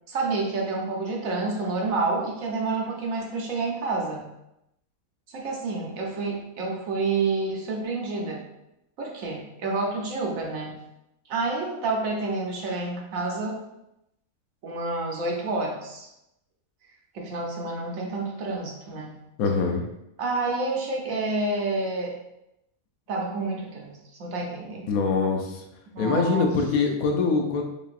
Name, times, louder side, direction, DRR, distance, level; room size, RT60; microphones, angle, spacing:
voice 1, 0.1-4.3 5.3-8.5 9.0-10.8 11.3-13.6 14.6-16.1 17.1-19.2 20.2-22.1 23.1-24.9 25.9-26.5, right 3 dB, 70° right, -1 dB, 1.1 m, -29 dB
voice 2, 19.4-19.8 24.9-25.6 26.0-27.6, left 4 dB, 75° left, 2 dB, 1.0 m, -23 dB
4.9 x 2.7 x 2.5 m, 0.86 s
omnidirectional pair, 1.5 m